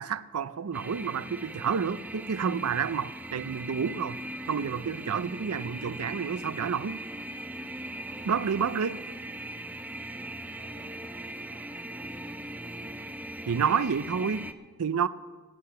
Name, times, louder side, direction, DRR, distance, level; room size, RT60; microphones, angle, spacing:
voice 1, 0.0-4.2 4.5-7.0 8.2-9.0 13.5-14.4 14.8-15.1, right 6 dB, 75° right, 0.5 m, -29 dB
sound 1, 0.7-14.5, right 1 dB, 5° right, 0.4 m, -40 dB
voice 2, 8.1-9.2 10.2-13.0 13.3-14.9, left 1 dB, 85° left, 3.2 m, -58 dB
17.0 x 9.7 x 5.7 m
head